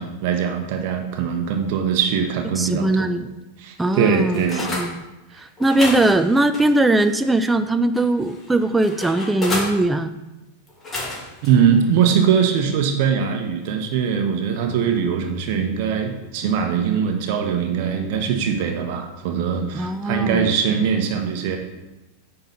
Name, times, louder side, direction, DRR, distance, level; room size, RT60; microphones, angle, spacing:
voice 1, 0.0-3.1 3.6-4.7 5.3-5.4 11.4-21.6, right 7 dB, 45° right, 4 dB, 1.0 m, -21 dB
voice 2, 2.6-3.3 3.8-5.0 5.4-10.1 19.7-20.5, right 2 dB, 10° right, 9 dB, 0.4 m, -20 dB
sound 1, 3.8-4.9 5.6-7.5 8.0-9.7 10.7-11.5 12.0-12.2, left 2 dB, 20° left, 2.5 m, -31 dB
9.0 x 3.9 x 5.7 m, 1.0 s
figure-of-eight pair, 90°, 0 cm